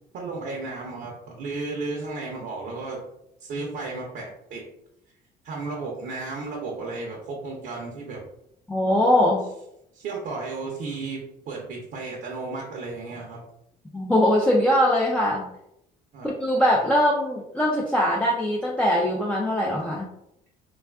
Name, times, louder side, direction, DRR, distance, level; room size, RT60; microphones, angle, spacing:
voice 1, 0.1-3.0 3.4-4.6 5.4-8.2 9.9-13.4 16.1-16.3, right 3 dB, 60° right, -1 dB, 0.6 m, -34 dB
voice 2, 8.7-9.4 13.9-15.5 16.2-20.0, left 1 dB, 5° left, -4 dB, 0.4 m, -21 dB
3.3 x 2.3 x 2.3 m, 0.81 s
cardioid pair, 110°, 17 cm